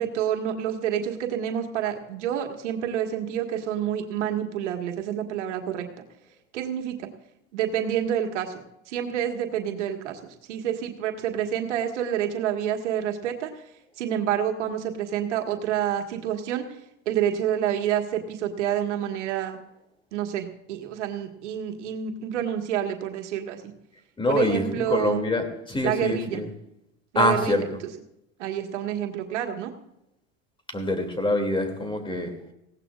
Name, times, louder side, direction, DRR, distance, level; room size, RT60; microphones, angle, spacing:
voice 1, 0.0-5.9 6.5-7.1 7.5-13.5 14.0-16.7 17.1-19.6 20.1-23.6 24.3-25.2 25.8-26.4 27.1-27.6 28.4-29.7, right 9 dB, 85° right, 3 dB, 1.8 m, -28 dB
voice 2, 24.2-26.5 27.1-27.8 30.7-32.3, left 1 dB, 15° left, 5 dB, 2.7 m, -25 dB
19.5 x 16.5 x 2.5 m, 0.83 s
supercardioid pair, 100°, 35 cm